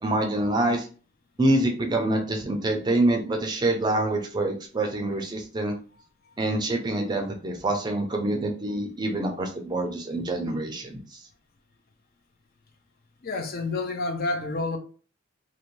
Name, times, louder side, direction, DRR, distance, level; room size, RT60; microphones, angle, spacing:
voice 1, 0.0-0.9 1.4-5.7 6.4-11.2, right 1 dB, 20° right, 0.4 m, -26 dB
voice 2, 13.2-14.8, left 3 dB, 45° left, 0.4 m, -29 dB
2.6 x 2.1 x 3.0 m
head